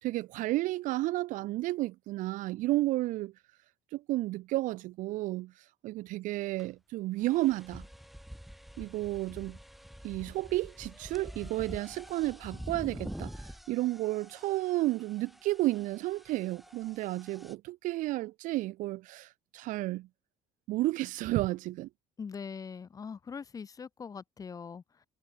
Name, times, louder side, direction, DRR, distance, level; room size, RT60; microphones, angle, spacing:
voice 1, 0.0-3.3 3.9-5.5 5.8-7.8 8.8-9.6 10.0-13.3 13.7-20.1 20.7-21.9, right 18 dB, 75° right, 3.7 m, -32 dB
sound 1, 6.6-6.7 7.2-17.5, equal, ahead, 6.3 m, -47 dB
voice 2, 22.2-25.1, left 6 dB, 25° left, 6.8 m, -42 dB
cardioid pair, 155°, 13 cm